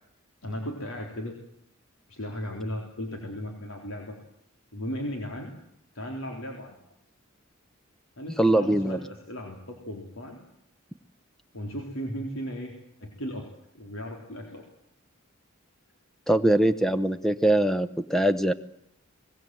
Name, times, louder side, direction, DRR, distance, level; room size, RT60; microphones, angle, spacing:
voice 1, 0.4-1.3 2.1-4.2 4.7-5.5 5.9-6.8 8.2-10.4 11.5-12.7 13.0-13.5 13.7-14.6, equal, 75° left, 1 dB, 4.0 m, -36 dB
voice 2, 8.4-9.0 16.3-18.5, right 1 dB, ahead, 11 dB, 1.0 m, -22 dB
24.0 x 20.5 x 7.9 m, 0.74 s
head